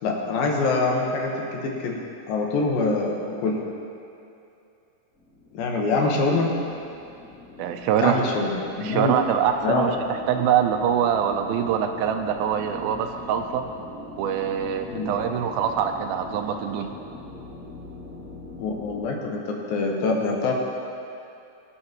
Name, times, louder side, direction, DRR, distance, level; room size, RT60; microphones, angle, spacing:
voice 1, 0.0-2.0 2.3-3.6 5.5-6.5 8.0-9.1 9.6-9.9 14.9-15.2 18.6-20.5, left 3 dB, 75° left, 0 dB, 3.0 m, -25 dB
sound 1, 5.1-19.0, left 3 dB, 5° right, 2.2 m, -42 dB
voice 2, 7.6-8.2 8.8-13.6 14.2-16.9, right 8 dB, 90° right, 6 dB, 2.5 m, -24 dB
21.5 x 8.6 x 3.0 m, 2.6 s
omnidirectional pair, 4.3 m